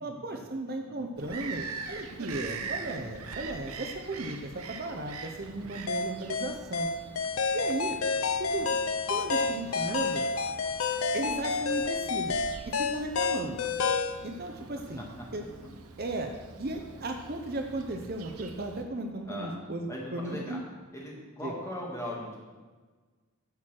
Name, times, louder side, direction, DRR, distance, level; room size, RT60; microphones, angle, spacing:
voice 1, 0.0-6.9 7.5-8.0 8.4-8.7 9.1-10.2 11.1-12.3 12.6-13.6 14.2-15.0 15.3-15.4 16.0-16.3 16.6-20.6 21.4-21.5, right 2 dB, 45° right, 4 dB, 0.7 m, -35 dB
Bird vocalization bird call bird song, 1.2-18.8, right 4 dB, 90° right, 0.8 m, -44 dB
sound 1, 5.9-14.2, left 4 dB, 75° left, 0.6 m, -29 dB
voice 2, 19.9-20.6 20.9-22.4, left 1 dB, 15° left, -3 dB, 1.9 m, -38 dB
10.5 x 4.6 x 7.5 m, 1.4 s
head